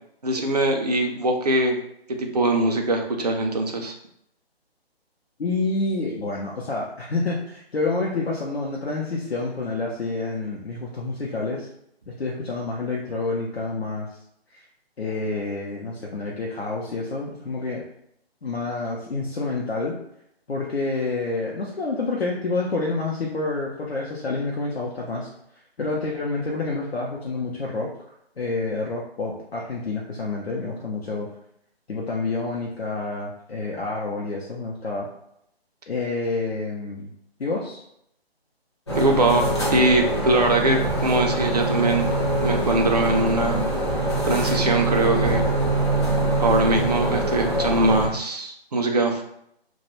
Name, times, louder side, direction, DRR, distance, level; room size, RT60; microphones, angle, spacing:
voice 1, 0.2-1.8 2.1-3.9 39.0-42.1 42.4-43.6 44.3-45.4 46.4-49.2, right 2 dB, 40° right, 3 dB, 0.4 m, -22 dB
voice 2, 5.4-11.7 12.1-14.2 14.5-14.7 15.0-17.8 18.4-19.9 20.5-27.9 28.4-31.3 31.9-35.1 35.9-37.1 37.4-37.8, left 3 dB, 75° left, -3 dB, 0.6 m, -28 dB
sound 1, 38.9-48.1, right 1 dB, 25° left, 0.5 m, -24 dB
2.3 x 2.1 x 2.9 m, 0.75 s
figure-of-eight pair, 145°, 31 cm